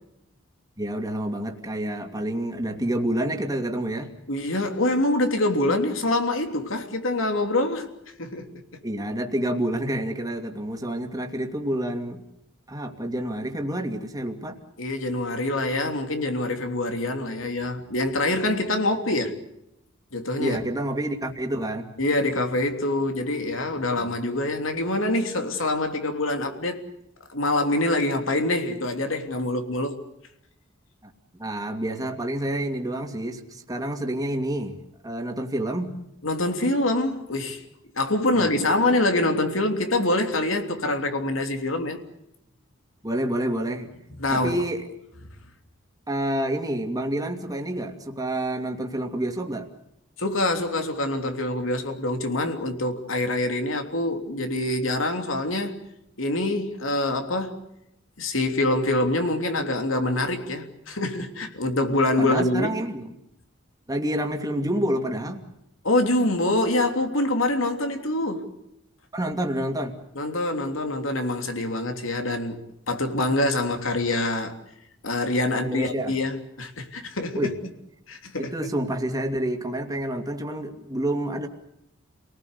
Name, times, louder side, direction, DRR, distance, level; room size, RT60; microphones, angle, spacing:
voice 1, 0.8-4.1 8.8-12.2 12.7-14.6 20.4-21.9 24.0-24.1 31.0-31.1 31.4-36.0 38.3-38.5 43.0-43.9 44.3-44.8 46.1-49.7 62.2-63.1 63.9-65.4 69.1-70.0 75.4-76.2 77.3-77.6 78.4-81.5, right 1 dB, 20° right, 2.5 m, -28 dB
voice 2, 4.3-7.9 8.2-8.5 14.8-19.4 20.1-20.6 22.0-26.8 27.3-30.0 36.2-37.6 37.9-42.0 44.2-44.6 50.2-55.7 56.2-57.6 58.2-62.7 65.8-68.5 70.1-74.6 75.0-77.5 78.1-78.5, left 2 dB, 80° left, 3.3 m, -25 dB
29.5 x 19.0 x 8.2 m
head